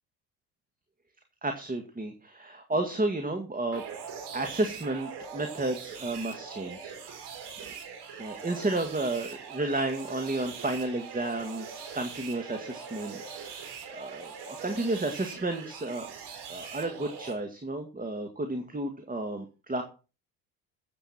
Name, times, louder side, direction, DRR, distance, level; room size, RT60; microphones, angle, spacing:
voice 1, 1.4-3.8 4.3-6.9 7.2-7.3 8.2-16.1 16.5-19.8, right 2 dB, 20° right, 5 dB, 2.1 m, -32 dB
sound 1, 3.7-17.3, right 6 dB, 60° right, 4.1 m, -42 dB
14.0 x 8.1 x 4.4 m, 0.33 s
hypercardioid pair, 65°, 44 cm